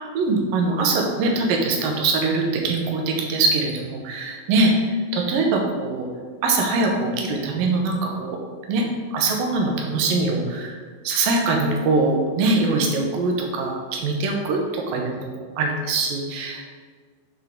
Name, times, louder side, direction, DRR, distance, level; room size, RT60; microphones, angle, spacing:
voice 1, 0.1-6.1 6.4-8.4 8.7-8.8 9.1-10.7 11.0-16.6, right 3 dB, 75° right, 1 dB, 2.2 m, -22 dB
9.2 x 3.6 x 3.7 m, 1.5 s
omnidirectional pair, 5.0 m